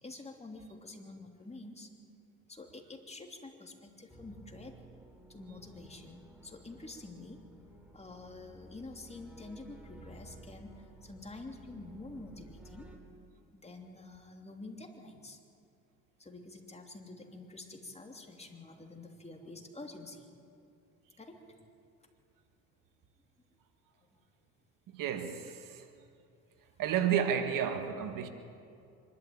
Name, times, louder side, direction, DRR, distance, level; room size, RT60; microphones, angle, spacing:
voice 1, 0.0-1.9 2.5-4.8 5.3-7.4 7.9-12.9 13.5-15.4 16.2-20.3 21.2-21.4 24.1-24.2, left 2 dB, 15° left, 3.1 m, -48 dB
sound 1, 4.1-13.0, right 1 dB, 5° right, 3.6 m, -55 dB
voice 2, 24.9-25.9 26.8-28.3, right 8 dB, 60° right, 1.7 m, -31 dB
25.0 x 12.5 x 8.8 m
supercardioid pair, 75°, 37 cm